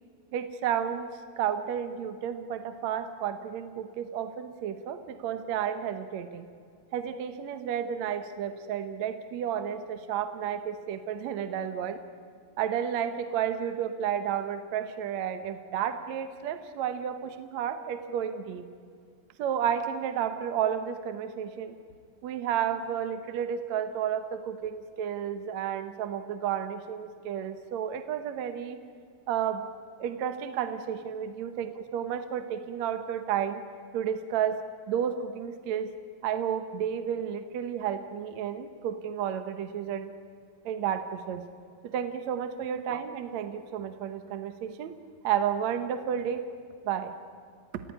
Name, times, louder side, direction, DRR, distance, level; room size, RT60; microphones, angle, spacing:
voice 1, 0.3-1.1 1.4-6.5 6.9-12.0 12.6-18.7 19.4-21.8 22.2-28.8 29.3-29.7 30.0-33.6 33.9-34.6 34.9-35.9 36.2-40.1 40.7-41.4 41.8-44.9 45.2-46.5 46.9-47.2, right 9 dB, 65° right, 9 dB, 2.1 m, -31 dB
29.0 x 16.5 x 10.0 m, 2.3 s
omnidirectional pair, 4.0 m